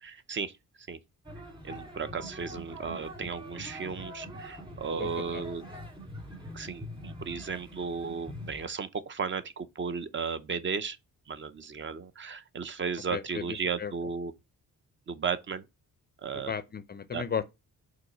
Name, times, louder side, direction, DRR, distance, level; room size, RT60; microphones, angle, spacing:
voice 1, 0.0-0.5 0.9-1.0 1.6-5.6 6.5-11.0 11.3-14.3 15.1-15.6 16.2-16.5 17.1-17.2, right 5 dB, 35° right, 0.6 m, -35 dB
sound 1, 1.2-8.7, equal, 15° right, 2.1 m, -44 dB
voice 2, 13.1-13.4 13.8-13.9 16.5-17.4, left 7 dB, 30° left, 0.4 m, -34 dB
5.3 x 4.0 x 5.4 m
wide cardioid pair, 160°, 34 cm